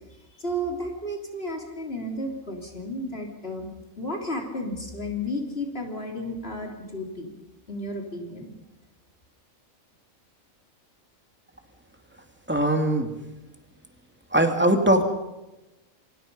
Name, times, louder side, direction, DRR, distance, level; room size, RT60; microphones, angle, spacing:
voice 1, 0.2-3.7 4.0-7.3 7.7-8.5, equal, 45° left, 1 dB, 3.7 m, -33 dB
voice 2, 12.5-13.1 14.3-15.1, right 1 dB, 10° right, 5 dB, 2.6 m, -21 dB
28.0 x 25.0 x 5.5 m, 1.0 s
omnidirectional pair, 1.4 m